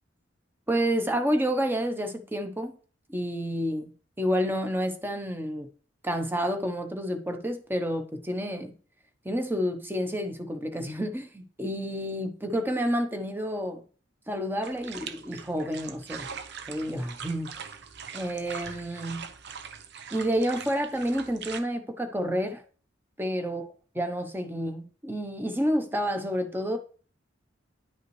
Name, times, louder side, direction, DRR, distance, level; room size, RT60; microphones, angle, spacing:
voice 1, 0.7-2.7 3.1-3.9 4.2-5.7 6.0-8.7 9.2-13.8 14.3-16.3 16.7-17.5 18.1-19.2 20.1-22.6 23.2-23.7 23.9-26.8, equal, 10° right, 0.9 m, -29 dB
sound 1, 14.6-21.6, right 6 dB, 60° right, 0.8 m, -42 dB
10.5 x 5.5 x 3.2 m
head